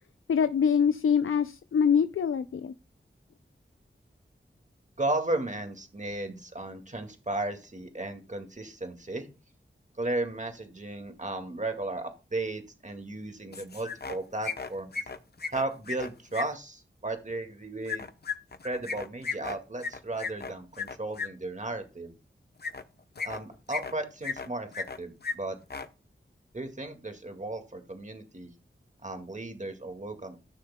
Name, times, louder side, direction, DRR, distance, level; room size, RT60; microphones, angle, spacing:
voice 1, 0.3-2.7, left 7 dB, 90° left, 12 dB, 0.4 m, -24 dB
voice 2, 5.0-9.3 10.0-14.9 15.5-18.1 18.6-22.1 23.2-25.6 26.5-28.5 29.0-30.4, right 2 dB, 35° right, 5 dB, 1.9 m, -35 dB
sound 1, 13.5-14.2 14.4-16.5 17.9-21.3 22.6-22.8 23.2-23.9 24.2-25.0 25.2-25.3 25.6-25.9, left 5 dB, 50° left, 0.8 m, -35 dB
15.0 x 6.5 x 2.2 m, 0.31 s
cardioid pair, 40°, 21 cm